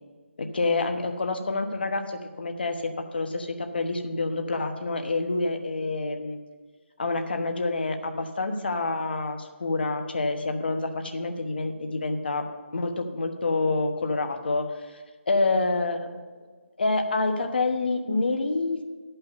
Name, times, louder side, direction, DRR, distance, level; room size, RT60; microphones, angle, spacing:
voice 1, 0.4-6.4 7.0-12.4 12.7-14.7 15.3-16.2 16.8-18.8, left 3 dB, 50° left, 6 dB, 1.1 m, -27 dB
11.0 x 5.7 x 6.9 m, 1.5 s
hypercardioid pair, 175°, 7 cm